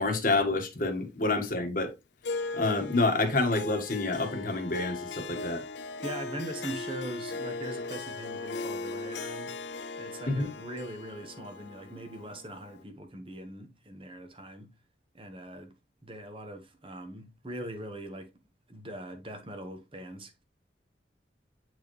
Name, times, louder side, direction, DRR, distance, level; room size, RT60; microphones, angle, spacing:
voice 1, 0.0-1.9 2.5-5.6 10.3-10.5, left 2 dB, 45° left, 1.5 m, -28 dB
Harp, 2.2-12.8, left 3 dB, 70° left, 0.6 m, -38 dB
voice 2, 6.0-9.6 10.0-14.7 15.1-15.7 16.0-18.3 18.7-20.3, right 1 dB, 30° right, 1.2 m, -41 dB
8.8 x 4.6 x 3.1 m
head